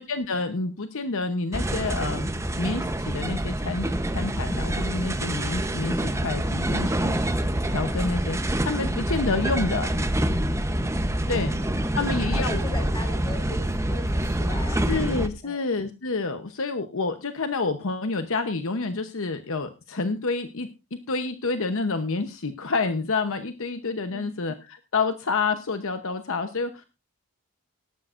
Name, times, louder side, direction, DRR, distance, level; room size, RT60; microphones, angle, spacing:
voice 1, 0.0-2.3 2.6-7.2 7.7-10.0 11.3-11.5 11.9-12.5 14.9-20.7 21.1-26.8, left 3 dB, 60° left, 8 dB, 0.9 m, -28 dB
sound 1, 1.5-15.3, right 1 dB, 15° right, 0.9 m, -26 dB
voice 2, 11.2-14.9 15.4-15.6 24.1-24.4, left 2 dB, 20° left, 4 dB, 4.2 m, -39 dB
18.0 x 12.5 x 2.5 m, 0.29 s
head